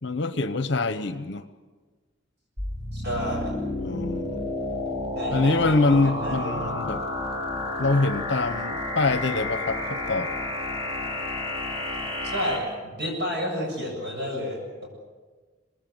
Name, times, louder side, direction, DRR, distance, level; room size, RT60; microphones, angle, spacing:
voice 1, 0.0-1.5 3.8-4.5 5.3-7.0 7.8-10.3, left 3 dB, 55° left, 11 dB, 0.9 m, -25 dB
sound 1, 2.6-12.6, left 2 dB, 25° right, 5.0 m, -31 dB
voice 2, 2.9-3.5 5.1-6.8 12.2-14.6, equal, 55° right, -1 dB, 7.5 m, -30 dB
26.5 x 20.0 x 7.9 m, 1.4 s
head